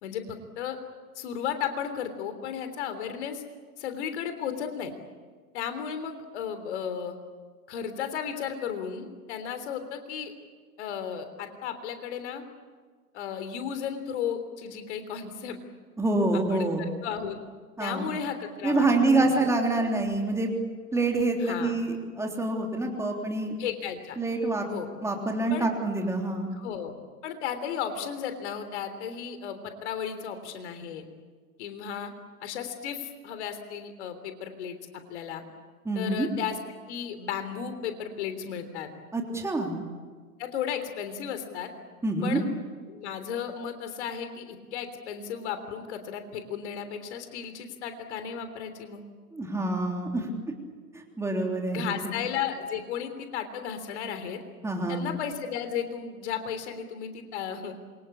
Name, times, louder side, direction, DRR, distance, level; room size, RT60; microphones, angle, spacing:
voice 1, 0.0-0.8 1.1-3.4 3.8-4.9 5.5-7.1 7.7-10.3 10.8-12.4 13.1-15.6 16.3-17.4 17.8-19.5 19.7-20.0 21.4-21.7 23.6-24.2 24.7-24.9 25.5-25.7 26.5-26.9 27.2-31.0 31.6-32.1 32.4-35.4 35.9-38.9 40.4-41.7 42.2-42.4 42.9-49.0 51.7-54.4 54.9-57.7, left 8 dB, 45° left, 9 dB, 3.5 m, -34 dB
voice 2, 16.0-16.9 17.8-18.1 18.6-20.5 20.9-23.6 24.2-24.6 25.0-26.5 35.8-36.3 39.1-39.8 42.0-42.4 49.3-50.3 50.9-52.1 54.6-55.1, right 2 dB, 5° right, 1 dB, 3.4 m, -26 dB
27.0 x 24.5 x 8.6 m, 1.5 s
figure-of-eight pair, 110°, 45 cm